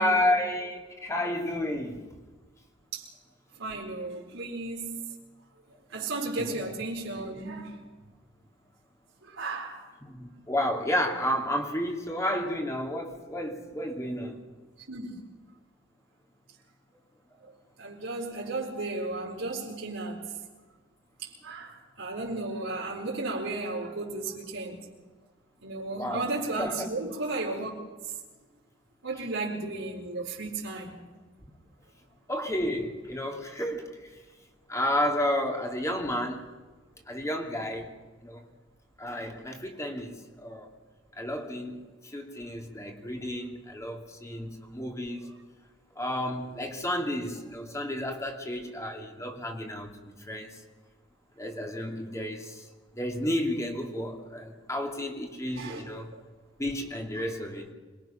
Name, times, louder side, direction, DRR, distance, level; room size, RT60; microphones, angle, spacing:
voice 1, 0.0-2.1 6.4-6.6 10.0-14.4 26.0-26.3 26.6-26.9 32.3-34.1 34.7-36.5 37.1-37.9 38.2-38.4 39.0-40.7 41.2-45.3 45.9-50.6 51.4-52.7 52.9-56.1 56.6-57.7, left 1 dB, 15° left, 2.9 m, -31 dB
voice 2, 3.5-5.1 5.9-7.8 9.2-9.8 14.9-15.1 17.4-17.5 17.8-20.3 21.2-24.9 25.6-27.7 29.0-31.1 55.5-55.8 56.1-56.2 57.3-57.4, right 2 dB, 85° right, 4.3 m, -34 dB
26.5 x 21.5 x 6.0 m
head